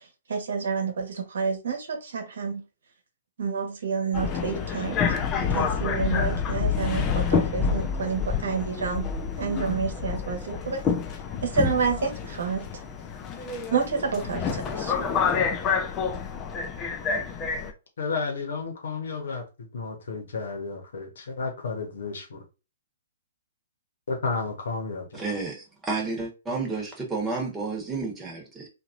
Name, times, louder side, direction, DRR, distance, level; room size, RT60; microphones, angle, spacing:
voice 1, 0.3-2.6 3.4-5.0 5.5-9.1 9.4-10.8 11.4-12.6 13.7-14.9, right 5 dB, 70° right, 1.0 m, -29 dB
Subway metro underground, 4.1-17.7, left 6 dB, 25° left, 0.6 m, -28 dB
voice 2, 18.0-22.4 24.1-25.2, left 4 dB, 70° left, 1.0 m, -32 dB
voice 3, 25.1-28.7, right 3 dB, 15° right, 1.2 m, -31 dB
2.9 x 2.5 x 2.5 m
hypercardioid pair, 120°, 0 cm